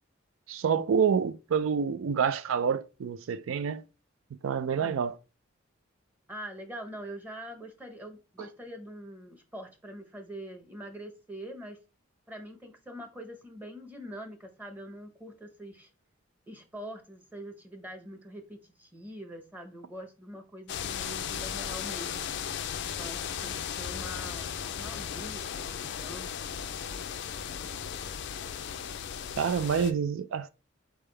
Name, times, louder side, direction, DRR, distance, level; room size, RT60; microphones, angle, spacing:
voice 1, 0.5-3.8 4.4-5.2 29.4-30.5, right 6 dB, 75° right, 0.4 m, -27 dB
voice 2, 4.8-5.1 6.3-11.8 12.3-15.9 16.5-22.3 23.0-27.1 27.4-27.9, equal, 10° right, 0.8 m, -44 dB
sound 1, 20.7-29.9, left 8 dB, 60° left, 0.4 m, -36 dB
4.5 x 3.5 x 3.3 m
head